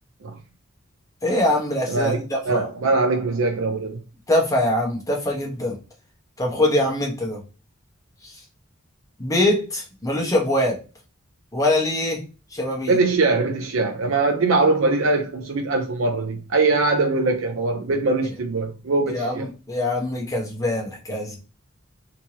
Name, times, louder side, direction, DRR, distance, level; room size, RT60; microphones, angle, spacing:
voice 1, 1.2-2.7 4.3-5.8 6.4-7.4 8.2-8.3 9.2-10.8 11.5-12.2 12.5-13.0 19.1-21.4, left 1 dB, 15° left, 1.1 m, -23 dB
voice 2, 1.9-2.2 2.5-4.0 12.9-19.5, right 3 dB, 80° right, 0.5 m, -22 dB
3.3 x 2.9 x 2.9 m
head